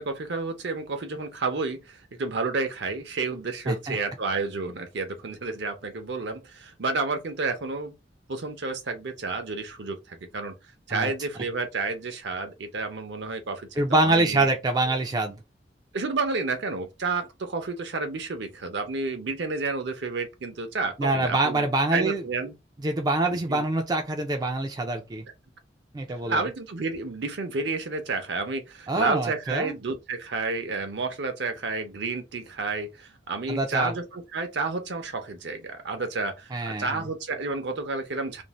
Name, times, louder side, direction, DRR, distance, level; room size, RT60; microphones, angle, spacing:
voice 1, 0.0-7.9 8.3-10.5 10.9-14.5 15.9-22.5 23.5-23.7 26.3-38.4, right 3 dB, 65° right, 0.6 m, -30 dB
voice 2, 3.7-4.0 10.9-11.1 13.8-15.4 21.0-22.2 22.8-25.2 25.9-26.4 28.9-29.7 33.5-33.9 36.5-37.0, right 2 dB, 20° right, 0.3 m, -25 dB
2.5 x 2.0 x 3.0 m
head